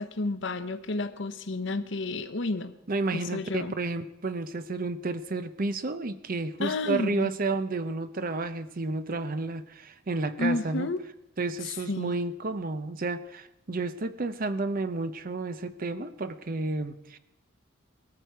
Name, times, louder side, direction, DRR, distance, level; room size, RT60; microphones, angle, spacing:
voice 1, 0.0-2.7 3.1-3.7 6.6-7.3 10.4-11.0 11.9-12.1, left 2 dB, 60° left, 11 dB, 0.9 m, -31 dB
voice 2, 2.9-10.9 11.4-17.2, right 3 dB, 40° right, 11 dB, 0.7 m, -31 dB
19.0 x 13.5 x 4.6 m, 0.87 s
head